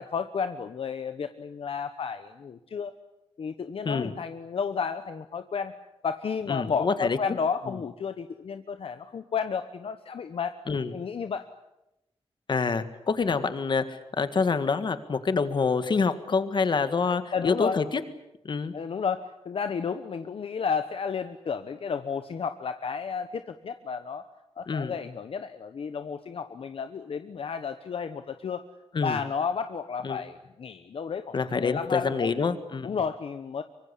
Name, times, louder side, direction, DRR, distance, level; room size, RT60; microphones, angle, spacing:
voice 1, 0.0-2.9 3.4-5.7 6.0-10.6 10.9-11.5 17.3-17.8 18.7-24.2 24.6-28.6 29.0-32.3 32.8-33.6, left 6 dB, 70° left, 9 dB, 1.1 m, -32 dB
voice 2, 6.5-7.2 7.7-7.8 10.7-10.9 12.5-18.0 18.4-18.7 24.7-25.0 28.9-29.2 30.0-30.2 31.3-32.9, left 4 dB, 50° left, 11 dB, 1.8 m, -27 dB
24.5 x 24.0 x 8.5 m, 0.89 s
wide cardioid pair, 175°, 10 cm